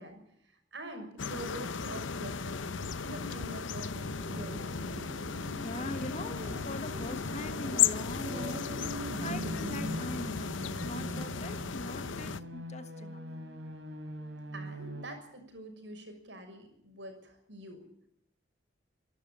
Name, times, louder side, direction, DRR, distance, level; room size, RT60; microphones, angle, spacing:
voice 1, 0.0-4.7 14.5-17.8, right 1 dB, 70° right, 6.4 m, -45 dB
sound 1, 1.2-12.4, left 6 dB, 85° left, 0.9 m, -35 dB
sound 2, 3.9-11.3, right 1 dB, 40° right, 1.0 m, -42 dB
voice 2, 5.6-8.8 9.2-13.2, left 1 dB, 35° left, 1.5 m, -42 dB
sound 3, 9.1-15.1, equal, 85° right, 3.9 m, -44 dB
26.5 x 13.0 x 9.3 m
head